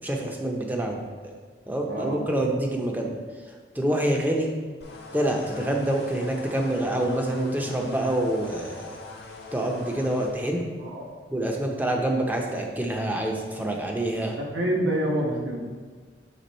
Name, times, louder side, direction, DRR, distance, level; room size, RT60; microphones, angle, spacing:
voice 1, 0.0-1.0 1.7-3.1 3.8-4.5 5.1-9.0 9.5-10.6 11.3-14.4, right 1 dB, 10° right, 1 dB, 0.5 m, -26 dB
sound 1, 4.8-10.3, left 3 dB, 65° left, 0.8 m, -42 dB
voice 2, 14.4-15.6, right 1 dB, 80° right, -2 dB, 1.2 m, -27 dB
6.8 x 3.5 x 4.1 m, 1.5 s
head